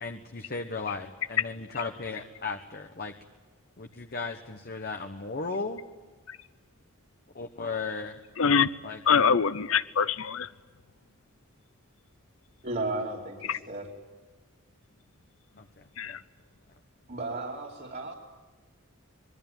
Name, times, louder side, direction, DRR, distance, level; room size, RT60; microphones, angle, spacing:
voice 1, 0.0-3.1 3.8-5.8 7.3-8.2 8.8-9.0 15.6-16.2, left 4 dB, 45° left, 5 dB, 1.3 m, -36 dB
voice 2, 8.4-8.7 9.1-10.5 13.5-13.6 16.0-16.2, left 6 dB, 80° left, 15 dB, 0.7 m, -24 dB
voice 3, 12.6-13.9 17.1-18.1, right 2 dB, 50° right, -2 dB, 3.0 m, -34 dB
25.5 x 21.5 x 9.1 m, 1.4 s
head